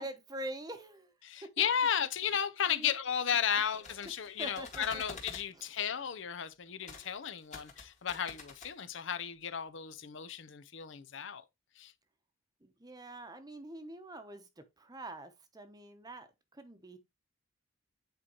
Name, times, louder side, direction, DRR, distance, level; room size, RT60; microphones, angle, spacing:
voice 1, 0.0-1.1 2.7-2.9 4.4-5.0 12.6-17.0, right 1 dB, 20° right, 0.8 m, -45 dB
voice 2, 1.2-11.4 11.8-11.9, left 8 dB, 65° left, 0.6 m, -34 dB
sound 1, 3.6-5.5 6.8-7.1 7.4-8.7, left 4 dB, 35° left, 1.8 m, -48 dB
8.7 x 4.4 x 2.9 m
head